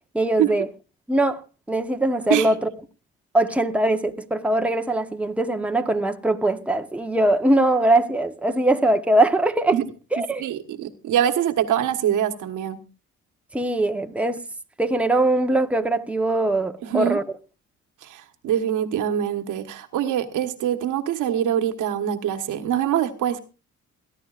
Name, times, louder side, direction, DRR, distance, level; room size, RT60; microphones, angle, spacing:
voice 1, 0.1-0.7 1.1-2.7 3.3-9.8 10.1-10.5 13.5-14.4 14.8-17.2, right 1 dB, 5° right, 1.0 m, -21 dB
voice 2, 10.4-12.8 16.8-17.2 18.0-23.4, right 10 dB, 85° right, 1.4 m, -24 dB
28.5 x 11.0 x 2.5 m
cardioid pair, 90°, 30 cm